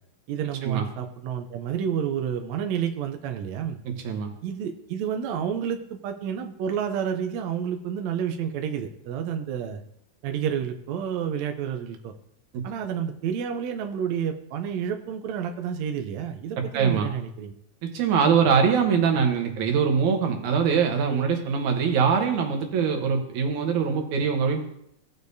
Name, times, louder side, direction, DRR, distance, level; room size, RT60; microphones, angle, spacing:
voice 1, 0.3-3.8 4.4-9.8 10.2-12.1 12.6-17.5 21.0-21.3, right 8 dB, 85° right, 5 dB, 1.5 m, -30 dB
voice 2, 16.7-17.1 17.8-24.7, right 6 dB, 65° right, 4 dB, 2.3 m, -23 dB
16.5 x 6.7 x 2.7 m, 0.74 s
omnidirectional pair, 4.0 m